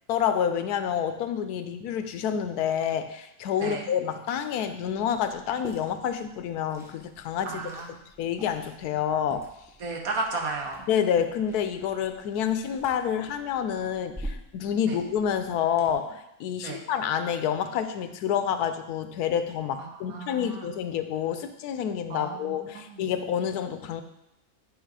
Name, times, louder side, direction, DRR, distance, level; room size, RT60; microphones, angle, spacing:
voice 1, 0.1-7.7 8.2-9.5 10.9-24.0, left 8 dB, 90° left, 9 dB, 1.1 m, -28 dB
Liquid, 4.8-15.9, equal, 5° right, 0.7 m, -47 dB
voice 2, 7.5-8.0 9.8-10.8 14.9-15.0 16.6-16.8 19.8-20.7 22.1-23.1, right 3 dB, 70° right, 1 dB, 1.5 m, -34 dB
9.1 x 3.4 x 4.8 m, 0.87 s
omnidirectional pair, 1.6 m